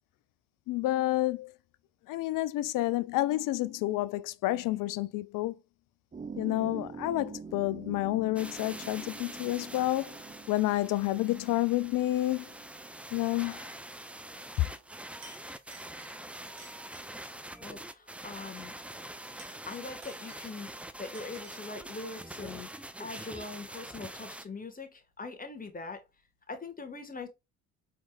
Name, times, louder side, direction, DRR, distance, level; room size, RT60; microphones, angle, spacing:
voice 1, 0.7-1.5 2.1-5.6 6.4-10.2 10.5-12.5 13.1-13.7 14.6-14.7, left 16 dB, 55° left, 0.5 m, -29 dB
sound 1, 6.1-13.1, right 5 dB, 20° right, 0.8 m, -46 dB
sound 2, 8.4-24.5, right 1 dB, 5° right, 0.4 m, -45 dB
Chink clink, 14.7-14.9 15.2-17.4 19.2-20.8 21.1-21.7, right 3 dB, 85° right, 1.4 m, -55 dB
voice 2, 17.6-18.7 19.7-20.7 21.0-22.7 23.0-26.0 26.5-27.3, left 3 dB, 20° left, 1.5 m, -42 dB
4.5 x 4.3 x 2.3 m
hypercardioid pair, 55°, 40 cm